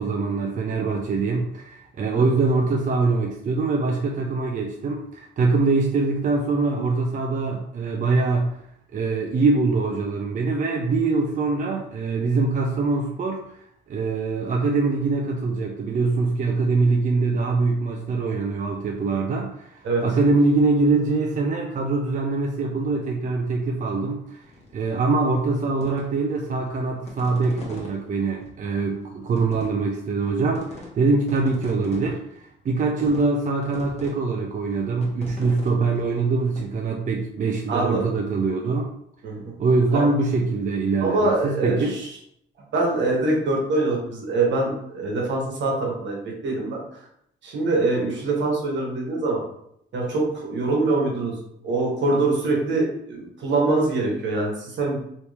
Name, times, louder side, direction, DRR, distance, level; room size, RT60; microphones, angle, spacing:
voice 1, 0.0-8.5 8.9-13.6 13.9-24.4 24.7-38.9 39.6-42.0, right 3 dB, 40° right, 2 dB, 0.5 m, -23 dB
sound 1, 24.4-24.9 25.3-27.9 28.4-28.5 29.0-29.1 29.4-30.3 30.5-30.9 31.2-32.4 33.0-33.4 33.6-34.1 34.5-36.6, left 2 dB, 35° left, 1.1 m, -40 dB
voice 2, 37.7-38.1 39.2-39.5 39.9-40.1 41.0-42.1 42.7-46.8 47.4-49.4 49.9-51.3 51.6-55.0, right 2 dB, 65° right, -1 dB, 1.3 m, -24 dB
3.0 x 2.7 x 3.3 m, 0.73 s
cardioid pair, 90°, 20 cm